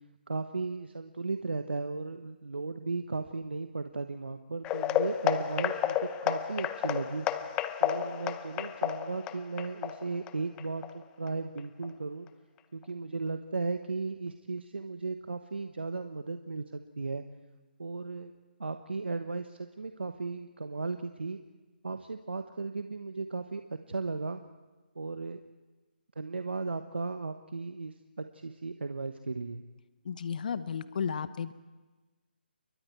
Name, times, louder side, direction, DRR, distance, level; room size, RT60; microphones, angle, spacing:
voice 1, 0.3-7.3 7.8-12.3 12.7-17.2 17.8-18.3 18.6-21.4 21.8-24.4 24.9-25.4 26.2-29.6, right 3 dB, 75° right, 7 dB, 1.2 m, -36 dB
sound 1, 4.6-11.3 11.6-11.9 12.3-12.4 12.8-12.9, left 11 dB, 15° left, 0.7 m, -32 dB
voice 2, 30.0-31.5, left 7 dB, 50° left, 14 dB, 1.0 m, -33 dB
29.0 x 23.0 x 4.7 m, 1.2 s
figure-of-eight pair, 150°, 6 cm